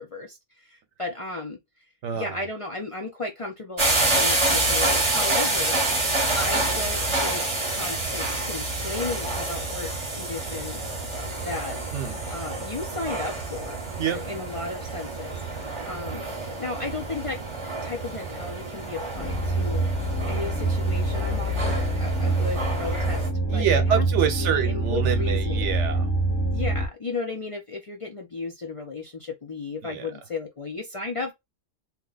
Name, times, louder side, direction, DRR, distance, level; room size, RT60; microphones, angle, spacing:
voice 1, 0.0-1.6 2.1-5.8 6.3-10.8 11.4-11.8 12.3-13.8 14.1-16.2 16.6-17.4 17.6-19.9 20.3-23.3 23.5-24.0 24.4-25.8 26.5-31.3, left 3 dB, 45° left, 0.4 m, -34 dB
voice 2, 2.0-2.5 11.9-12.2 14.0-14.2 23.5-26.1 29.8-30.1, right 8 dB, 80° right, 1.0 m, -26 dB
sound 1, 3.8-23.3, right 2 dB, 30° right, 0.8 m, -28 dB
sound 2, 19.2-26.9, right 2 dB, 20° left, 0.8 m, -25 dB
2.8 x 2.2 x 3.9 m
omnidirectional pair, 1.2 m